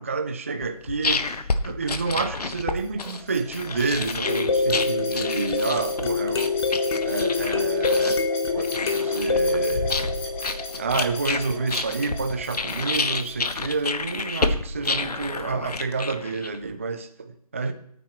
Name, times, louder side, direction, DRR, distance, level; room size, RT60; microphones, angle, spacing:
voice 1, 0.0-6.7 7.0-8.3 8.5-9.9 10.8-17.7, right 4 dB, 20° right, 0.4 m, -29 dB
sound 1, 0.6-16.7, left 3 dB, 75° left, 1.2 m, -30 dB
sound 2, 2.7-13.8, left 2 dB, 10° left, 1.2 m, -39 dB
sound 3, 4.3-11.2 15.4-15.5 15.9-16.0, left 3 dB, 40° left, 1.0 m, -25 dB
18.0 x 9.1 x 3.0 m
figure-of-eight pair, 160°, 20 cm